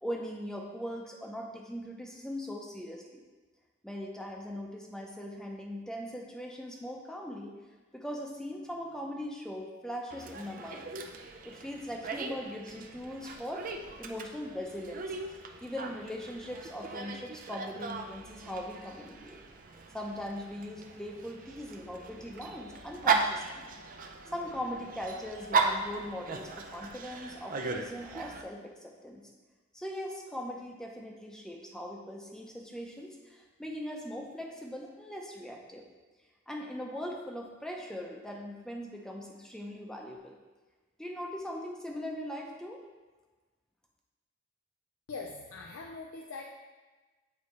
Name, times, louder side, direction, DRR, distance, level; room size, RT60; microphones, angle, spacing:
voice 1, 0.0-3.2 3.8-7.5 7.9-10.8 11.4-13.7 14.0-15.2 15.6-19.4 19.9-23.7 24.3-29.3 29.7-35.8 36.5-40.4 41.0-42.8, equal, 5° left, 0 dB, 0.7 m, -40 dB
Dog, 10.1-28.4, right 4 dB, 45° right, 0.5 m, -37 dB
voice 2, 45.1-46.5, left 4 dB, 80° left, 1 dB, 0.5 m, -42 dB
8.4 x 4.0 x 3.2 m, 1.2 s
head